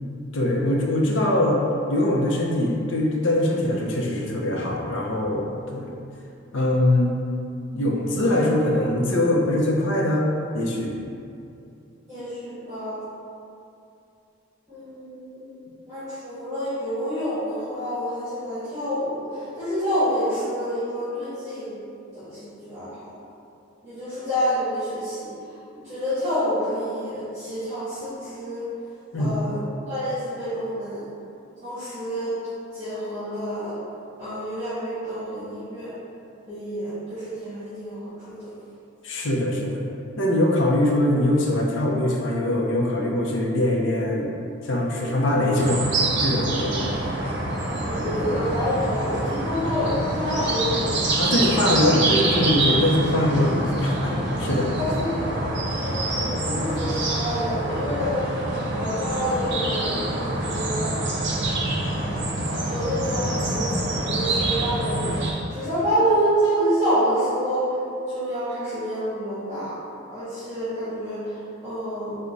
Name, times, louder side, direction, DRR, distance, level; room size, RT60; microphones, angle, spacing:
voice 1, 0.3-1.6 1.9-6.0 6.5-7.1 7.7-11.0 29.1-29.4 39.0-39.8 40.2-44.3 44.6-46.9 51.2-54.7, left 1 dB, 75° left, -1 dB, 0.6 m, -22 dB
voice 2, 12.1-13.0 14.7-15.4 15.9-21.8 22.1-23.1 23.8-25.3 25.8-28.7 29.2-31.0 31.6-32.3 32.7-33.7 34.2-35.9 36.5-38.5 47.8-50.9 54.8-55.4 55.8-58.4 58.8-61.0 62.4-67.7 68.1-69.8 70.1-71.3 71.6-72.1, equal, 15° right, -16 dB, 1.5 m, -28 dB
sound 1, 45.6-65.3, right 2 dB, 65° right, 0.6 m, -26 dB
4.6 x 2.2 x 3.9 m, 2.6 s
head